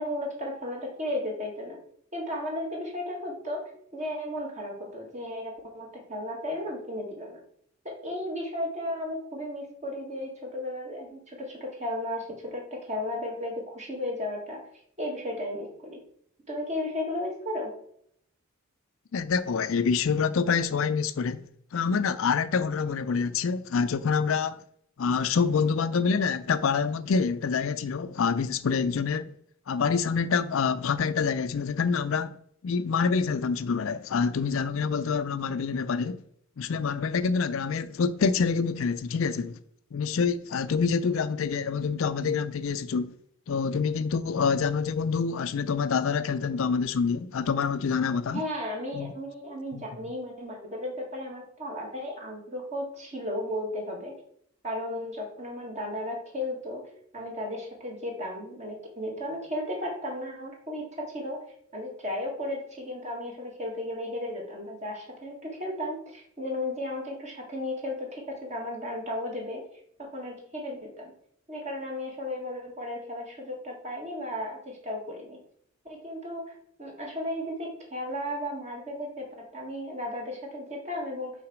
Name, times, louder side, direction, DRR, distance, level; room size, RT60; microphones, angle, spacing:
voice 1, 0.0-1.8 2.1-3.6 3.9-7.4 7.8-14.6 15.0-16.0 16.5-17.7 48.3-54.1 54.6-56.8 57.1-61.4 61.7-69.6 70.0-71.1 71.5-75.4 75.8-76.5 76.8-81.3, left 1 dB, 30° right, 2.0 m, -34 dB
voice 2, 19.1-21.4 21.7-24.6 25.0-29.3 29.7-32.4 32.6-36.2 36.6-39.6 39.9-43.1 43.5-48.4 48.9-49.1 49.7-49.9, left 5 dB, 65° left, 0.4 m, -26 dB
5.9 x 4.1 x 6.2 m
head